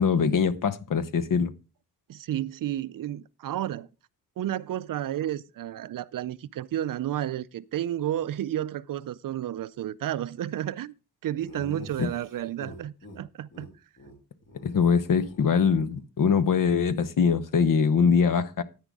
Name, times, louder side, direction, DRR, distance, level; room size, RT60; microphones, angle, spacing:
voice 1, 0.0-1.5 12.0-12.1 14.6-18.6, left 6 dB, 60° left, 0.9 m, -23 dB
voice 2, 2.1-3.9 4.4-10.9 11.2-13.7, right 12 dB, 60° right, 0.5 m, -31 dB
Laughter, 11.4-13.2 13.5-13.7 14.0-14.1 14.4-16.0, left 1 dB, 30° left, 3.0 m, -46 dB
10.0 x 9.9 x 3.5 m
wide cardioid pair, 165°, 37 cm